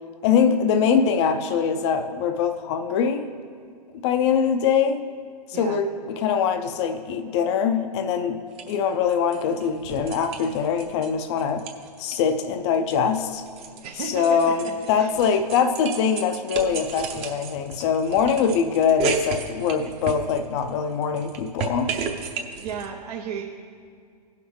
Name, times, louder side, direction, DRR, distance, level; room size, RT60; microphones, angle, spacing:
voice 1, 0.2-3.3 4.0-5.1 5.6-11.7 12.0-13.4 14.0-22.0, left 7 dB, 40° left, 8 dB, 0.6 m, -23 dB
sound 1, 8.5-8.8 9.1-11.1 11.4-12.2 12.5-20.7 21.0-22.9, right 5 dB, 30° right, 0.9 m, -33 dB
voice 2, 13.8-14.5 14.9-15.1 22.6-23.4, right 7 dB, 65° right, 0 dB, 0.8 m, -33 dB
17.5 x 5.8 x 3.1 m, 2.2 s
hypercardioid pair, 115°, 21 cm